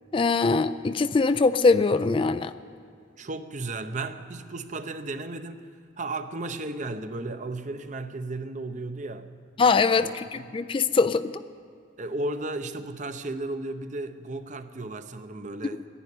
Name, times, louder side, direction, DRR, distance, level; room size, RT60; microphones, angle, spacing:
voice 1, 0.1-2.5 9.6-11.3, left 4 dB, 25° left, 0.3 m, -22 dB
voice 2, 3.2-5.7 6.0-9.3 9.9-10.6 12.0-15.9, right 2 dB, 40° right, 0.7 m, -34 dB
13.0 x 11.0 x 9.9 m
head